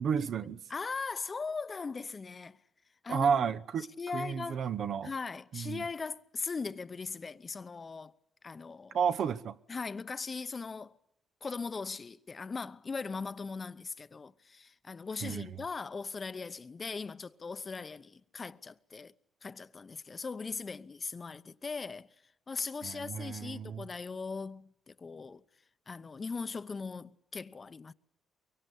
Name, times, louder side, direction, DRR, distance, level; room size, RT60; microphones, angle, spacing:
voice 1, 0.0-0.6 3.1-5.1 5.5-5.8 8.9-9.6 15.2-15.5 22.8-23.9, right 7 dB, 65° right, 0.9 m, -32 dB
voice 2, 0.7-2.6 3.0-3.4 4.0-4.6 5.0-8.1 8.4-9.0 9.7-10.9 11.4-19.1 19.4-22.1 22.5-25.4 25.9-27.9, left 4 dB, 35° left, 0.9 m, -39 dB
24.0 x 23.0 x 8.4 m
cardioid pair, 90°, 0 cm